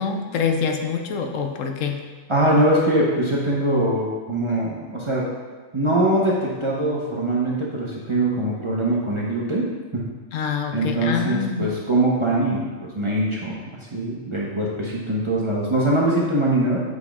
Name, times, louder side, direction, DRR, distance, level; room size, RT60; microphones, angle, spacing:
voice 1, 0.0-2.0 10.3-11.7, left 6 dB, 80° left, 4 dB, 1.0 m, -25 dB
voice 2, 2.3-5.2 5.7-9.7 10.7-13.6 13.9-16.8, right 1 dB, 30° right, -5 dB, 0.7 m, -22 dB
8.1 x 5.0 x 2.3 m, 1.4 s
omnidirectional pair, 1.3 m